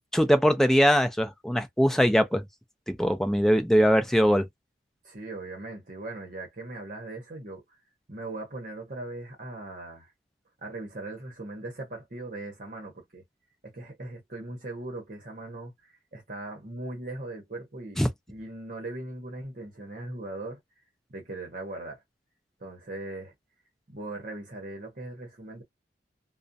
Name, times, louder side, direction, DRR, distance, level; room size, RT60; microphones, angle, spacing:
voice 1, 0.1-2.4 2.9-4.5 18.0-18.1, equal, ahead, 0.3 m, -22 dB
voice 2, 5.0-7.6 8.1-10.1 10.6-13.2 13.6-18.0 18.3-20.6 21.1-22.0 22.6-23.3 23.9-25.6, right 2 dB, 50° right, 0.9 m, -39 dB
2.4 x 2.1 x 2.6 m
head